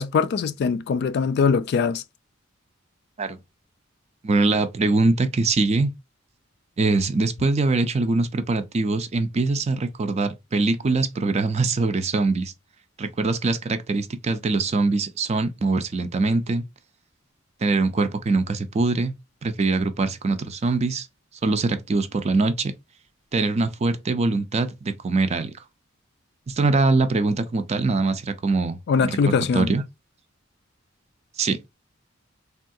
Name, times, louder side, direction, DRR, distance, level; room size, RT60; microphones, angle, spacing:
voice 1, 0.0-2.0 28.9-29.7, left 5 dB, 55° left, 0.3 m, -22 dB
voice 2, 4.2-5.9 6.8-12.5 13.0-16.6 17.6-19.1 19.4-21.1 21.4-22.7 23.3-25.5 26.5-29.8 31.4-31.6, right 3 dB, 35° right, 0.4 m, -23 dB
3.4 x 2.3 x 2.6 m
head